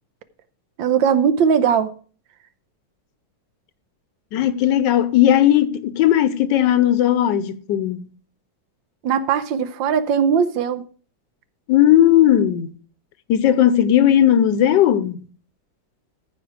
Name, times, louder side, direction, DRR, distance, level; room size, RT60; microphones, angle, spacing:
voice 1, 0.8-1.9 9.0-10.8, right 7 dB, 80° right, 1.4 m, -19 dB
voice 2, 4.3-8.1 11.7-12.7 13.3-15.3, left 11 dB, 75° left, 1.2 m, -16 dB
14.0 x 5.1 x 4.7 m
omnidirectional pair, 2.1 m